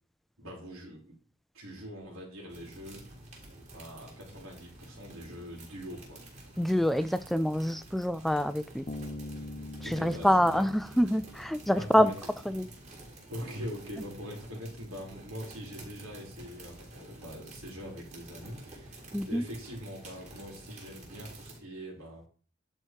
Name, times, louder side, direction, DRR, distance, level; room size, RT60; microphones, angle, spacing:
voice 1, 0.4-1.2 1.5-3.0 3.7-6.2 9.8-10.7 11.7-12.2 13.3-22.2, equal, 85° right, -1 dB, 4.3 m, -43 dB
sound 1, 2.5-21.6, right 1 dB, 35° right, 3.8 m, -49 dB
voice 2, 6.6-8.8 9.9-10.7 11.0-12.1 12.5-12.7 19.1-19.4, equal, ahead, 12 dB, 0.4 m, -26 dB
Bass guitar, 8.9-12.4, left 1 dB, 30° left, 0.8 m, -43 dB
11.0 x 5.0 x 4.6 m, 0.41 s
head